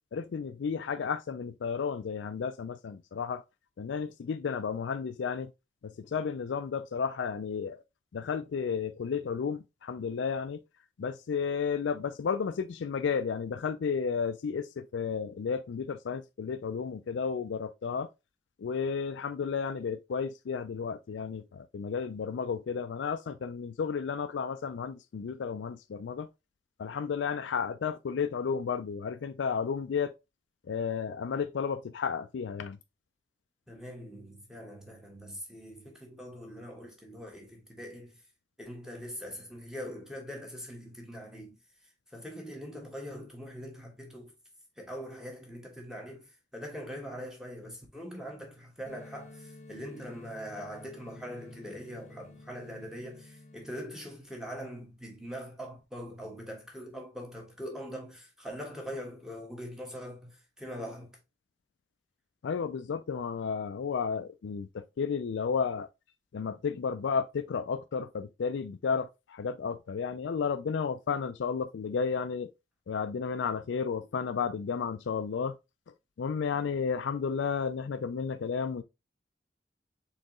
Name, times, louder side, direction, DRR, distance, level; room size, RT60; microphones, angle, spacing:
voice 1, 0.1-3.4 3.8-5.5 5.8-7.8 8.1-10.6 11.0-18.1 18.6-26.3 26.8-30.1 30.7-32.8 62.4-65.9 66.3-72.5 72.9-75.5 76.2-78.8, left 6 dB, 85° left, 0.4 m, -32 dB
voice 2, 33.7-38.2 38.6-41.6 42.1-44.3 44.8-61.1, equal, 5° right, 1.3 m, -42 dB
sound 1, 48.9-53.9, left 2 dB, 40° left, 0.9 m, -51 dB
4.3 x 3.9 x 3.0 m
head